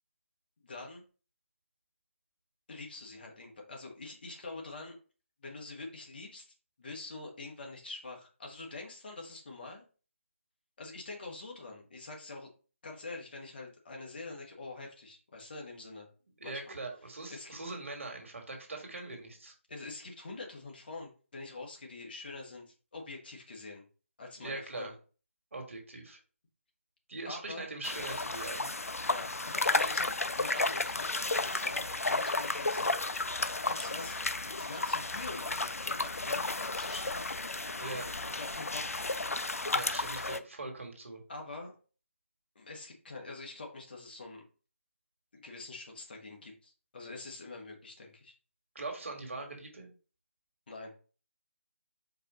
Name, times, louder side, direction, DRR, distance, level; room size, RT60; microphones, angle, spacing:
voice 1, 0.6-1.0 2.7-4.9 5.4-9.8 10.8-12.5 12.8-16.1 16.4-16.8 17.3-17.6 19.7-23.8 24.2-24.9 27.2-27.7 29.1-37.6 38.2-39.2 41.3-41.7 42.5-44.4 45.3-48.3 50.7-50.9, left 3 dB, 45° left, 1 dB, 1.4 m, -45 dB
voice 2, 16.4-19.5 24.4-24.9 25.5-26.2 27.1-28.7 37.8-38.1 39.7-41.2 48.7-49.9, right 2 dB, 65° right, 2 dB, 1.6 m, -41 dB
sound 1, 27.8-40.4, left 2 dB, 85° left, 0.4 m, -33 dB
4.7 x 2.7 x 4.1 m, 0.37 s
figure-of-eight pair, 155°, 8 cm